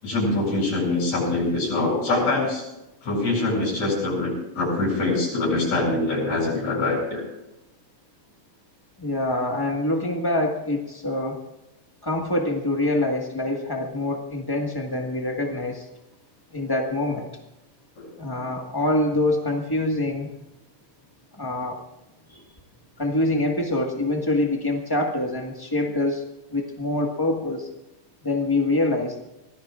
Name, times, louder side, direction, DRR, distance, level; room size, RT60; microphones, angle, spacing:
voice 1, 0.0-2.7 3.0-7.2 18.0-18.1, left 2 dB, 65° left, -2 dB, 8.6 m, -24 dB
voice 2, 9.0-11.4 12.0-15.9 16.5-17.3 18.2-20.3 21.3-21.8 22.3-22.4 23.0-26.2 26.5-27.7 28.2-29.3, left 2 dB, 20° left, 0 dB, 0.6 m, -25 dB
25.0 x 18.0 x 2.5 m, 0.94 s
omnidirectional pair, 3.5 m